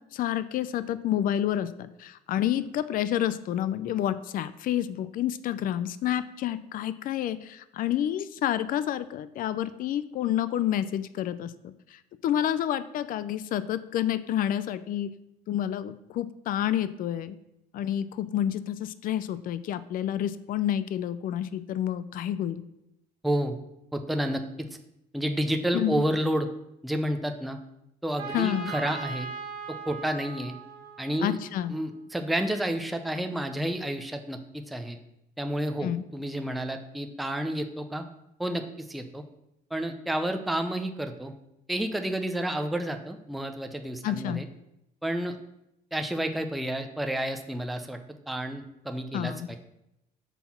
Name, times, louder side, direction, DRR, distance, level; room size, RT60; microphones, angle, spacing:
voice 1, 0.1-11.7 12.2-15.1 15.5-17.4 17.7-22.6 25.7-26.0 28.3-28.7 31.2-31.7 35.8-36.0 44.0-44.4 49.1-49.5, left 11 dB, 55° left, 14 dB, 0.4 m, -29 dB
voice 2, 23.2-23.6 23.9-24.7 25.1-26.5 26.8-27.6 28.0-29.3 29.7-30.5 31.0-31.4 31.7-35.0 35.4-38.0 38.4-39.2 39.7-41.3 41.7-44.5 45.0-45.4 45.9-48.0 48.3-49.6, right 1 dB, ahead, 5 dB, 0.5 m, -30 dB
Trumpet, 28.2-31.9, right 4 dB, 70° right, 1.5 m, -39 dB
5.6 x 4.3 x 5.8 m, 0.84 s
cardioid pair, 110°, 17 cm